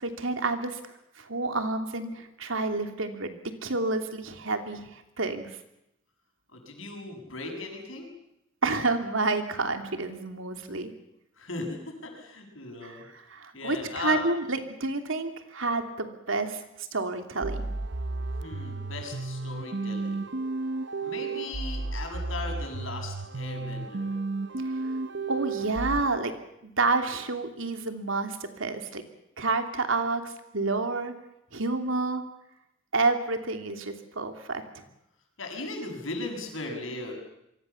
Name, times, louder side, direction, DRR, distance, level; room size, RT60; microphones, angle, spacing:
voice 1, 0.0-5.6 8.6-10.9 12.8-16.6 16.9-17.7 24.6-24.8 25.3-26.3 26.6-29.0 29.4-31.1 31.5-32.2 32.9-34.8, right 3 dB, 75° right, 6 dB, 2.9 m, -29 dB
voice 2, 6.5-8.1 11.3-13.1 13.5-14.2 18.4-20.3 21.0-24.2 35.4-37.1, left 2 dB, 75° left, 3 dB, 7.4 m, -37 dB
sound 1, 17.4-26.0, right 3 dB, 60° right, 0.9 m, -33 dB
27.0 x 23.5 x 7.2 m, 0.84 s
head